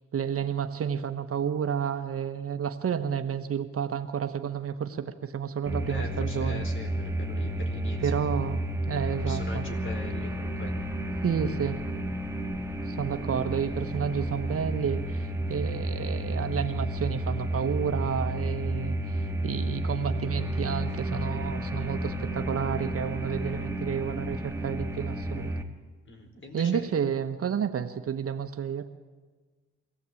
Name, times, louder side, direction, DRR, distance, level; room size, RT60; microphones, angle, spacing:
voice 1, 0.1-6.6 8.0-8.6 8.9-9.6 11.2-11.8 12.9-25.5 26.5-28.8, right 8 dB, 50° right, 9 dB, 1.3 m, -30 dB
sound 1, 5.7-25.6, right 1 dB, 10° right, 2.0 m, -31 dB
voice 2, 5.9-8.1 9.3-11.0 13.3-13.5 14.1-14.4 26.0-26.9, left 2 dB, 40° left, 5 dB, 4.4 m, -42 dB
23.5 x 15.5 x 8.5 m, 1.4 s
cardioid pair, 90°, 30 cm